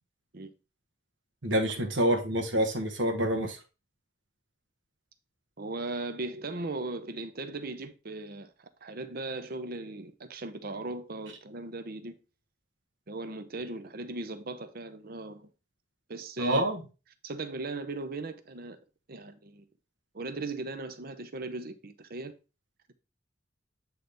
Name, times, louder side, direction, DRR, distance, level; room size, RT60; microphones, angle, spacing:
voice 1, 1.4-3.6 16.4-16.8, right 1 dB, 70° right, 1.3 m, -27 dB
voice 2, 5.6-12.2 13.1-15.5 16.1-16.6 17.2-18.8 19.1-19.7 20.1-22.3, right 2 dB, 50° right, 0.7 m, -38 dB
8.4 x 4.0 x 3.4 m
head